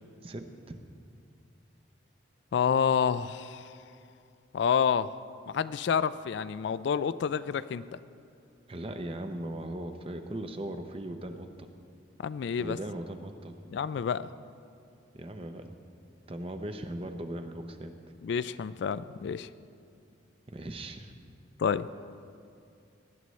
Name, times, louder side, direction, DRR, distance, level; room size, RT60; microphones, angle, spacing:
voice 1, 0.2-0.8 8.7-11.7 12.6-13.5 15.1-15.8 16.3-17.9 18.3-18.4 20.5-21.1, right 1 dB, 30° right, 7 dB, 0.6 m, -39 dB
voice 2, 2.5-3.7 4.5-5.1 5.5-7.9 12.2-12.8 13.7-14.3 18.2-19.5 21.6-21.9, left 7 dB, 65° left, 15 dB, 0.3 m, -28 dB
19.0 x 12.0 x 3.1 m, 2.5 s
head